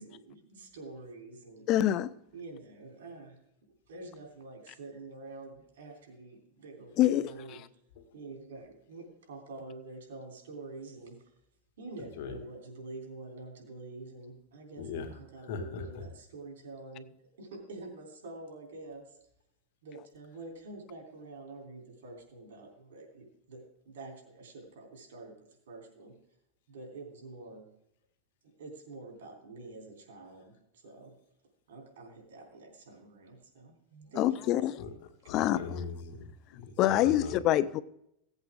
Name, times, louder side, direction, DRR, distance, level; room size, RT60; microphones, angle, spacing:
voice 1, 0.0-1.7 2.3-3.4 3.9-7.8 8.1-11.3 11.8-19.2 19.8-25.4 25.7-26.1 26.7-27.7 28.4-31.1 31.7-34.6 35.2-35.7, right 2 dB, 85° right, 3.5 m, -47 dB
voice 2, 1.7-2.1 7.0-7.2 34.2-34.7 35.3-35.6 36.8-37.8, left 13 dB, 40° left, 0.5 m, -25 dB
voice 3, 14.8-15.1 15.5-16.0 34.8-34.9 35.3-36.7 37.0-37.3, left 5 dB, 70° left, 2.0 m, -39 dB
16.0 x 8.1 x 3.7 m
supercardioid pair, 135°, 0 cm